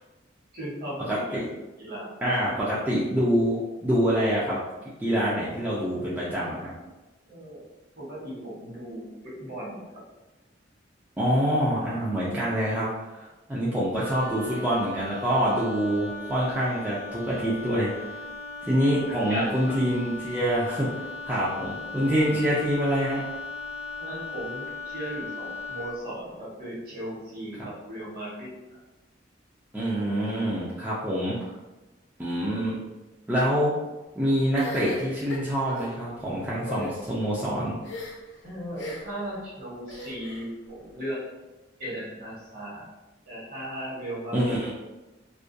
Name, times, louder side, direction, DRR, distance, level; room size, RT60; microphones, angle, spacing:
voice 1, 0.5-1.4 1.8-2.3 7.3-7.6 8.0-10.0 19.1-19.7 24.0-28.5 38.4-41.2 41.8-42.9 43.3-44.5, right 1 dB, 50° right, -6 dB, 1.1 m, -36 dB
voice 2, 1.1-1.4 2.2-4.6 5.0-6.7 11.2-18.2 18.6-23.2 27.6-27.7 29.7-31.5 32.2-32.8 33.3-33.7 34.2-37.8 44.3-44.7, equal, 10° right, -8 dB, 0.3 m, -26 dB
Wind instrument woodwind instrument, 13.9-26.0, left 3 dB, 85° right, 0.4 m, -38 dB
sound 1, 34.6-35.9 36.6-36.9 37.8-38.3 38.8-39.2 39.9-40.5, left 2 dB, 65° left, 0.6 m, -38 dB
2.3 x 2.2 x 2.5 m, 1.1 s
head